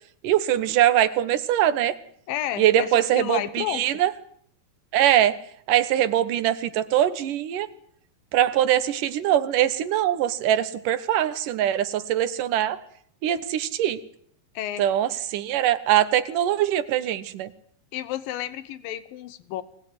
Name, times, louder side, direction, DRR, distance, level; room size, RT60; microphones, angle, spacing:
voice 1, 0.2-2.0 2.6-4.1 4.9-5.4 5.7-7.7 8.3-12.8 13.2-14.0 14.8-17.5, right 11 dB, 70° right, 14 dB, 2.7 m, -22 dB
voice 2, 2.3-3.8 14.5-14.8 17.9-19.6, left 13 dB, 80° left, 15 dB, 2.9 m, -31 dB
23.0 x 19.5 x 9.5 m, 0.63 s
omnidirectional pair, 4.0 m